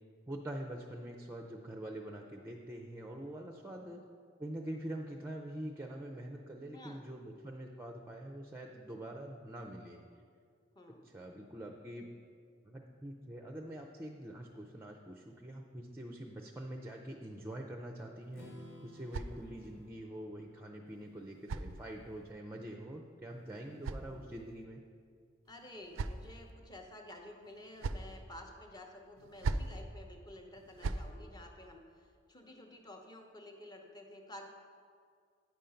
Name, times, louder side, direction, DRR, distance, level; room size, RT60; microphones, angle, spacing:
voice 1, 0.3-4.0 4.4-10.0 11.0-12.1 12.6-18.5 18.8-24.8, right 1 dB, 10° right, 3 dB, 0.5 m, -45 dB
voice 2, 6.7-7.1 10.7-11.1 24.0-24.3 25.5-34.5, left 1 dB, 20° left, 3 dB, 0.8 m, -52 dB
sound 1, 18.2-19.9 20.9-22.3 23.3-24.6 25.5-26.5 27.4-28.2 29.2-29.8 30.5-31.1, right 3 dB, 70° right, 0.4 m, -41 dB
Strum, 18.3-22.3, left 1 dB, 80° left, 1.8 m, -58 dB
9.4 x 5.2 x 5.7 m, 2.2 s
head